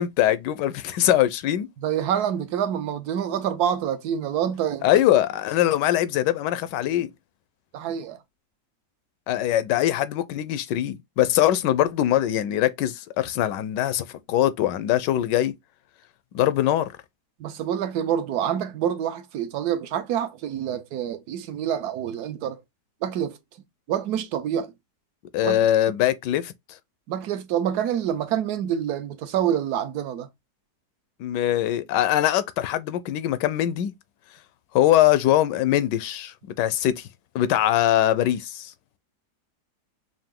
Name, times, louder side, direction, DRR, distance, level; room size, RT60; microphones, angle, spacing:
voice 1, 0.0-1.7 4.8-7.1 9.3-15.5 16.3-17.0 25.3-26.5 31.2-33.9 34.7-37.1 37.3-38.7, left 12 dB, 85° left, 1.2 m, -22 dB
voice 2, 1.8-4.9 7.7-8.2 17.4-22.6 23.0-23.4 23.9-24.7 25.4-25.6 27.1-30.3, right 9 dB, 70° right, 1.2 m, -27 dB
4.9 x 2.6 x 3.6 m
omnidirectional pair, 1.8 m